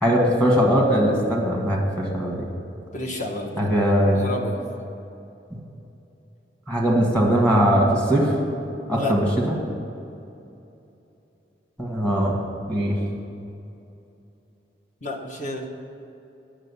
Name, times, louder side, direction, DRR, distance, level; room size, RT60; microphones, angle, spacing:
voice 1, 0.0-2.5 3.6-4.2 6.7-8.3 8.9-9.5 11.8-12.4 12.7-13.0, equal, 10° left, -3 dB, 1.5 m, -20 dB
voice 2, 2.9-3.7 4.1-4.6 8.9-9.1 15.0-15.7, left 2 dB, 45° left, 1 dB, 1.0 m, -30 dB
9.0 x 6.3 x 6.8 m, 2.8 s
head